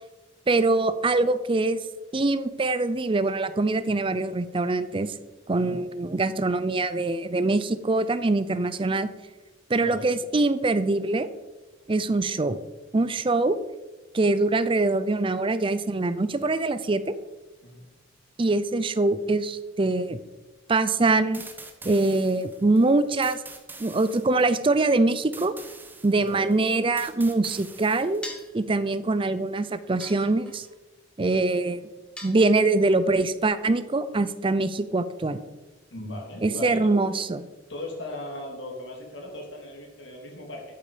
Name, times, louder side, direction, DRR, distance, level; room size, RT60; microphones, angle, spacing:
voice 1, 0.5-1.8 2.1-5.2 5.5-9.1 9.7-11.3 11.9-12.6 12.9-13.6 14.1-17.1 18.4-20.2 20.7-21.4 21.8-23.4 23.8-25.5 26.0-28.3 28.5-30.7 31.2-31.8 32.2-35.4 36.4-37.5, right 2 dB, 25° right, 13 dB, 0.5 m, -23 dB
voice 2, 9.8-10.1 17.6-17.8 26.1-26.4 35.9-36.8 37.7-40.6, left 1 dB, 70° left, 0 dB, 3.3 m, -38 dB
sound 1, 21.3-28.5, right 3 dB, 10° right, 1.2 m, -45 dB
sound 2, 28.2-28.6 30.0-30.7 32.2-32.9, left 1 dB, 5° left, 1.8 m, -41 dB
12.5 x 8.6 x 5.0 m, 1.1 s
head